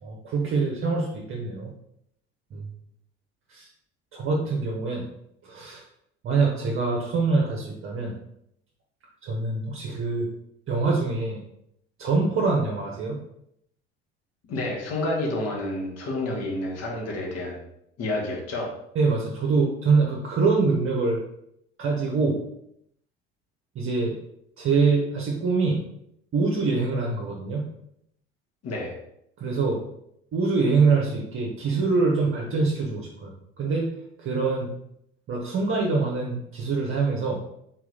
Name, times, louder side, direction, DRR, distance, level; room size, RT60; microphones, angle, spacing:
voice 1, 0.0-1.7 2.5-2.7 3.5-3.7 4.1-5.1 5.4-5.8 6.2-8.1 9.2-10.3 10.7-11.4 12.0-13.2 18.9-21.2 21.8-22.4 23.7-24.1 24.6-25.8 26.3-27.6 29.4-29.8 30.3-33.3 33.6-33.9 34.2-34.7 35.3-37.4, right 4 dB, 40° right, -2 dB, 1.0 m, -24 dB
voice 2, 14.4-17.6 18.0-18.7 28.6-29.0, left 2 dB, 45° left, -2 dB, 1.6 m, -29 dB
3.9 x 3.0 x 3.9 m, 0.75 s
figure-of-eight pair, 60°, 33 cm